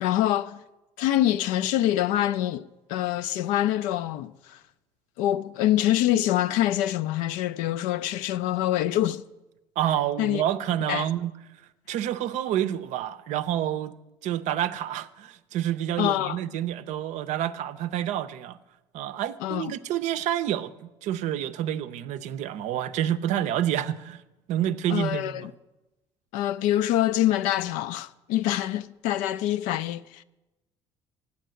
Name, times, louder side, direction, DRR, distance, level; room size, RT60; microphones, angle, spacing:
voice 1, 0.0-0.6 1.0-4.6 5.2-9.2 10.2-10.4 10.9-11.1 16.0-16.4 19.4-19.7 24.9-25.5 26.3-30.2, left 13 dB, 70° left, 0.4 m, -25 dB
voice 2, 9.8-11.3 11.9-13.9 14.2-18.6 18.9-24.2 24.5-25.5, right 11 dB, 65° right, 0.5 m, -28 dB
8.2 x 7.1 x 7.7 m
hypercardioid pair, 65°, 14 cm